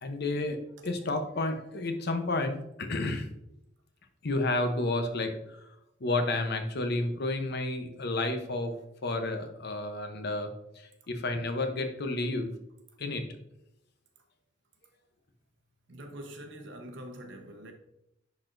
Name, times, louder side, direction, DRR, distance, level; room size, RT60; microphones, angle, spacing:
voice 1, 0.0-0.6 0.8-3.3 4.2-5.7 6.0-8.7 9.0-12.5 13.0-13.3, left 2 dB, 60° left, 0.8 m, -31 dB
voice 2, 15.9-17.7, right 1 dB, 70° right, 1.0 m, -44 dB
10.5 x 4.2 x 2.6 m
head